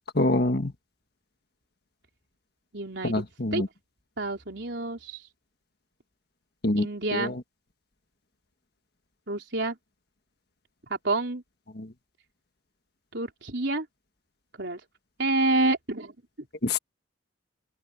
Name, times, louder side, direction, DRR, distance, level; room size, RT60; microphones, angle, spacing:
voice 1, 0.2-0.7 3.0-3.7 6.6-6.9 7.1-7.4 11.8-11.9 16.6-16.8, left 2 dB, 50° left, 1.6 m, -25 dB
voice 2, 2.7-3.2 3.5-3.6 4.2-5.2 6.8-7.4 9.3-9.8 10.9-11.4 13.1-13.9 14.6-14.8 15.2-16.1, right 2 dB, 60° right, 4.4 m, -28 dB
open air
head